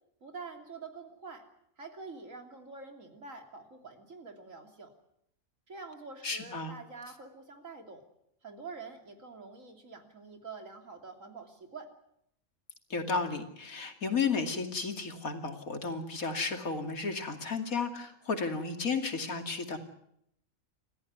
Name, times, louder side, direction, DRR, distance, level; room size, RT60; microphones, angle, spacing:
voice 1, 0.2-1.5 1.8-4.9 5.7-8.0 8.4-11.9, right 4 dB, 70° right, 5 dB, 3.4 m, -46 dB
voice 2, 6.2-6.7 12.9-19.8, left 4 dB, 90° left, 5 dB, 3.0 m, -33 dB
28.0 x 14.5 x 9.4 m, 0.76 s
omnidirectional pair, 1.4 m